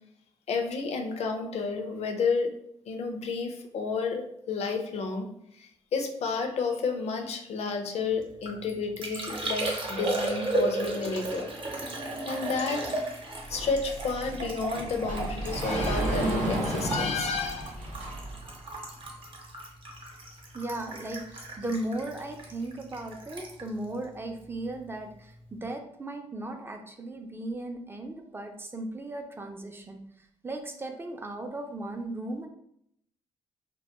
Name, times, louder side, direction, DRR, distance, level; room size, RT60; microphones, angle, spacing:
voice 1, 0.5-2.5 2.9-11.5 12.2-12.9 13.3-17.7, left 4 dB, 65° left, 4 dB, 0.4 m, -31 dB
Liquid, 8.2-24.8 25.1-25.6, right 2 dB, 45° right, 0.7 m, -35 dB
Sliding door, 13.5-18.5, right 1 dB, 80° right, 0.8 m, -32 dB
voice 2, 20.5-32.5, right 2 dB, 20° right, 4 dB, 0.4 m, -37 dB
2.2 x 2.1 x 2.8 m, 0.72 s
cardioid pair, 75°, 12 cm